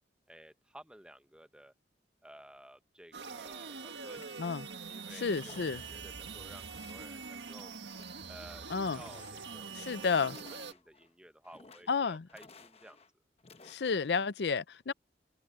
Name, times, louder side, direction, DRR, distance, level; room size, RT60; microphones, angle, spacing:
voice 1, 0.3-1.7 2.2-4.5 4.9-5.6 5.9-7.7 8.3-13.0, right 1 dB, 5° right, 1.0 m, -55 dB
sound 1, 3.1-10.7, right 5 dB, 90° right, 1.6 m, -44 dB
sound 2, 4.2-4.8 5.3-6.2 6.8-7.4 7.7-8.4 8.9-9.7 10.3-11.1 11.4-12.0 12.3-13.1 13.4-14.1, left 4 dB, 35° left, 1.0 m, -57 dB
voice 2, 5.1-5.8 8.7-9.0 9.7-10.4 11.9-12.3 13.6-14.9, left 5 dB, 70° left, 0.5 m, -31 dB
open air
head